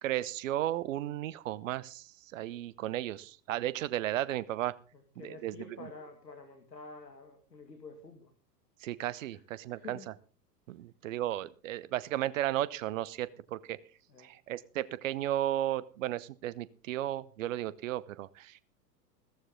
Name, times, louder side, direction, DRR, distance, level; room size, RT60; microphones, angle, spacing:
voice 1, 0.0-4.8 5.2-5.5 5.8-5.9 8.8-10.1 10.7-13.8 14.2-18.6, right 13 dB, 50° right, 20 dB, 0.9 m, -34 dB
voice 2, 5.2-8.3 9.3-9.4 9.7-10.1 14.1-14.3, left 4 dB, 80° left, 5 dB, 2.5 m, -49 dB
15.5 x 14.0 x 3.9 m, 0.37 s
figure-of-eight pair, 95°, 49 cm